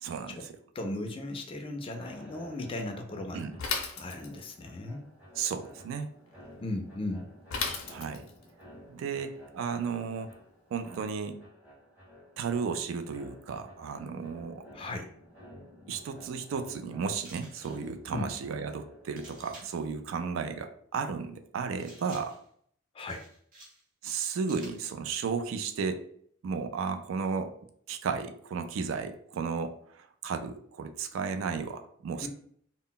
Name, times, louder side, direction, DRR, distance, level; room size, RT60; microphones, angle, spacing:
voice 1, 0.0-0.6 3.3-3.6 5.4-6.1 7.9-8.3 8.9-10.3 10.7-11.4 12.4-14.6 15.9-22.3 24.0-26.1 26.4-27.5 27.9-32.3, right 5 dB, 75° right, 8 dB, 0.3 m, -34 dB
voice 2, 0.7-3.4 3.9-5.1 6.6-7.3 14.7-15.1 18.1-18.3 22.9-23.2 32.2-32.3, left 2 dB, 25° left, 4 dB, 0.3 m, -36 dB
sound 1, 1.9-19.7, equal, 5° right, 0.7 m, -53 dB
Bicycle / Mechanisms, 3.6-4.6 7.5-8.4, left 5 dB, 90° left, 0.5 m, -34 dB
sound 2, 17.1-17.9 19.2-19.9 21.8-22.5 23.1-23.8 24.1-24.9, right 2 dB, 45° right, 0.7 m, -52 dB
2.1 x 2.0 x 3.7 m, 0.62 s
head